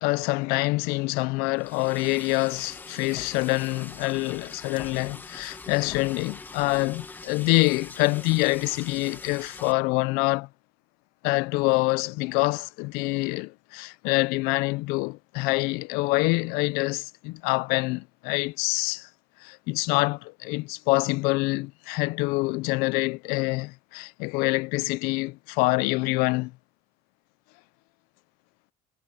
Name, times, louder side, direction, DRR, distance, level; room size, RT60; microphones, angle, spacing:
voice 1, 0.0-10.5 11.2-19.1 19.4-26.5, left 24 dB, 80° left, 0.4 m, -26 dB
Liquid, 1.6-9.7, left 3 dB, 10° left, 1.0 m, -43 dB
sound 1, 3.1-4.0 4.7-7.1 7.8-8.9, left 9 dB, 35° left, 1.3 m, -47 dB
cardioid pair, 175°, 15 cm